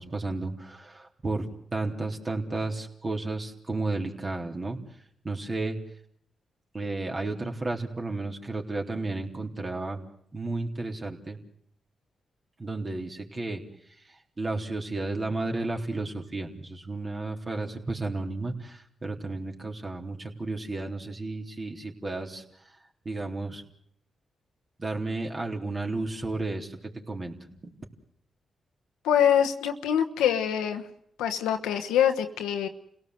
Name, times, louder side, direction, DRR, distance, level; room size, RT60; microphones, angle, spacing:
voice 1, 0.0-4.8 5.2-5.8 6.7-10.0 10.3-11.4 12.6-13.6 14.4-22.4 23.1-23.6 24.8-26.8 27.1-27.3 27.6-27.8, right 2 dB, 40° right, 2 dB, 3.7 m, -32 dB
voice 2, 29.0-30.8 31.2-32.7, left 9 dB, 85° left, 6 dB, 1.2 m, -24 dB
28.5 x 17.5 x 8.0 m, 0.67 s
supercardioid pair, 45°, 0 cm